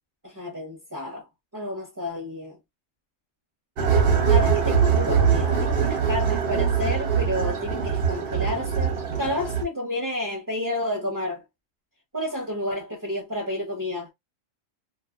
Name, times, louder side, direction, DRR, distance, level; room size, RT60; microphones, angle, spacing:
voice 1, 0.2-1.3 1.5-2.6 4.2-11.4 12.1-14.1, left 1 dB, 20° right, 0.6 m, -30 dB
sound 1, 3.8-9.6, right 6 dB, 50° right, 0.8 m, -22 dB
2.6 x 2.4 x 2.4 m
omnidirectional pair, 1.4 m